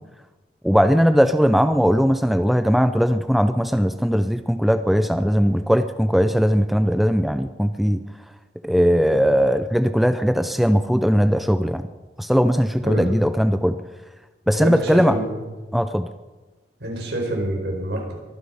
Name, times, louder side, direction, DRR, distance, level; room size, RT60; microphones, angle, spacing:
voice 1, 0.6-8.0 8.6-11.9 12.2-13.8 14.5-15.2 15.7-16.1, equal, ahead, 9 dB, 0.5 m, -19 dB
voice 2, 12.8-13.1 14.5-15.4 16.8-18.1, right 1 dB, 70° right, 1 dB, 4.7 m, -27 dB
23.0 x 9.6 x 5.6 m, 1.2 s
head